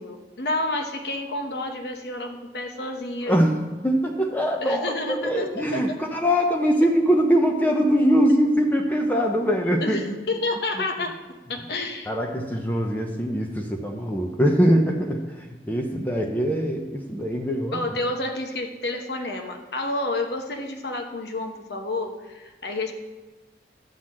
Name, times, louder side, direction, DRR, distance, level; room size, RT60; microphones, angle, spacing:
voice 1, 0.0-3.4 4.6-5.9 9.8-11.1 11.5-12.1 17.7-22.9, left 2 dB, 70° left, 4 dB, 1.1 m, -30 dB
voice 2, 3.3-3.6 3.8-10.0 12.1-15.2 15.7-17.8, equal, 10° left, 2 dB, 0.6 m, -22 dB
11.5 x 4.0 x 7.4 m, 1.2 s
head